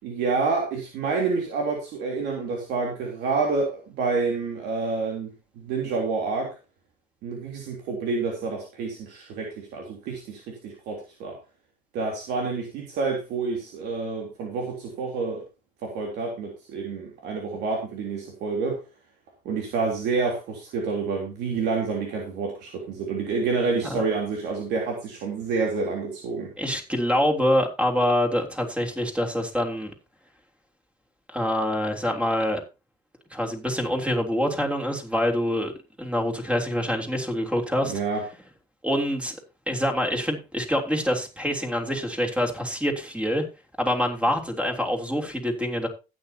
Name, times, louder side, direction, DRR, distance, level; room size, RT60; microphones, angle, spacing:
voice 1, 0.0-6.5 7.2-11.4 11.9-15.4 15.8-18.8 19.4-26.5 37.8-38.2, right 4 dB, 85° right, 0 dB, 3.5 m, -28 dB
voice 2, 26.6-29.9 31.3-32.6 33.3-35.7 36.0-37.9 38.8-39.4 39.7-43.4 43.8-45.9, equal, 5° right, 4 dB, 3.4 m, -25 dB
15.0 x 9.6 x 2.9 m, 0.29 s
cardioid pair, 110°, 17 cm